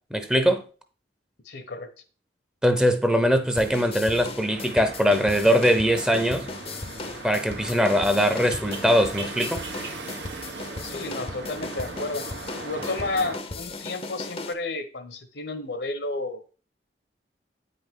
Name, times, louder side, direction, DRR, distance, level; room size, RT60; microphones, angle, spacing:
voice 1, 0.1-0.6 2.6-6.5 7.2-9.6, equal, 5° right, 0.7 m, -21 dB
voice 2, 1.4-1.9 10.8-12.2 12.6-16.5, left 2 dB, 75° left, 1.2 m, -31 dB
sound 1, 3.6-14.5, left 3 dB, 35° left, 0.7 m, -37 dB
sound 2, 4.5-13.4, right 3 dB, 85° right, 1.3 m, -38 dB
8.7 x 5.4 x 3.8 m
head